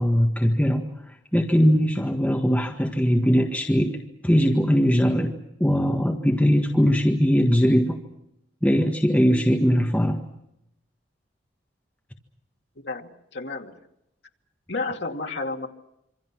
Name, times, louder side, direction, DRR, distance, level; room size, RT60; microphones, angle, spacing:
voice 1, 0.0-8.0 8.6-10.2, equal, 5° left, 2 dB, 1.6 m, -21 dB
voice 2, 12.8-13.8 14.7-15.7, left 3 dB, 65° left, 3 dB, 2.5 m, -31 dB
27.0 x 25.0 x 6.1 m, 0.83 s
head